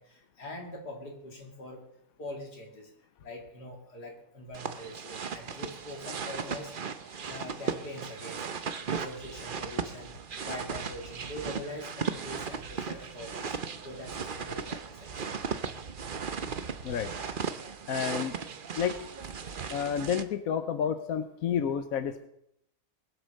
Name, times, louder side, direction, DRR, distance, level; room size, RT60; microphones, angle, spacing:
voice 1, 0.0-1.8 2.2-2.9 3.2-6.7 7.3-8.5 8.8-10.1 10.4-13.5 13.8-15.5, left 1 dB, 80° left, 2 dB, 3.3 m, -43 dB
sound 1, 4.5-20.2, right 6 dB, 40° right, 0.8 m, -37 dB
voice 2, 17.9-18.3 18.8-19.0 19.7-22.3, left 8 dB, 65° left, 10 dB, 1.2 m, -30 dB
21.0 x 8.0 x 6.5 m, 0.76 s
omnidirectional pair, 1.7 m